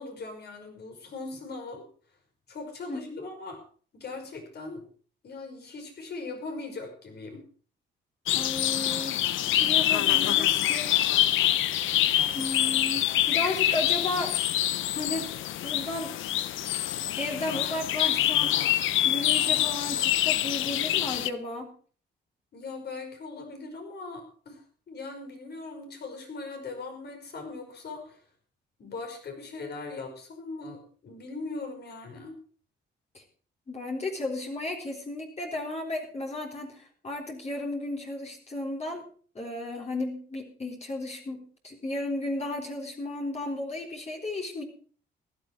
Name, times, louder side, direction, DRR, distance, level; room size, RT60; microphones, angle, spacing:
voice 1, 0.0-1.8 2.5-3.6 3.9-4.8 5.2-7.4 22.5-28.2 28.8-32.4, left 3 dB, 55° left, 4 dB, 5.6 m, -40 dB
voice 2, 2.9-3.2 8.3-9.2 9.6-10.9 12.3-14.3 14.9-15.3 15.6-16.1 17.2-18.6 19.0-21.7 33.1-33.2 33.7-39.0 39.3-44.6, left 2 dB, 35° left, 0 dB, 3.9 m, -34 dB
sound 1, 8.3-21.3, left 13 dB, 80° left, 0.8 m, -25 dB
16.0 x 12.0 x 4.7 m, 0.43 s
cardioid pair, 90°, 20 cm